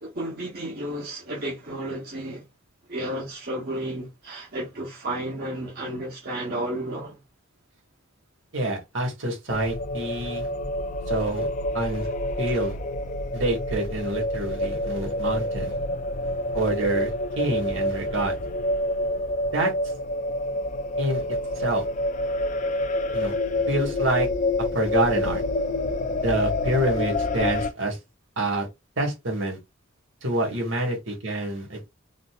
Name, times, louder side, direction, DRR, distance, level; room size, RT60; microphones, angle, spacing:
voice 1, 0.0-2.5 2.9-7.2 12.5-12.6 16.2-16.4, right 1 dB, 45° right, 0.9 m, -32 dB
voice 2, 8.5-10.5 11.1-11.5 11.7-12.1 12.4-12.7 13.3-15.7 16.5-17.1 17.4-18.4 19.5-19.7 21.0-21.2 21.5-21.8 23.1-23.3 23.7-24.3 24.7-25.4 26.2-28.0 28.4-28.7 29.0-29.6 30.2-31.9, right 1 dB, 70° right, 1.5 m, -27 dB
sound 1, 9.5-27.7, left 1 dB, 35° left, 0.3 m, -28 dB
3.9 x 2.5 x 2.3 m
head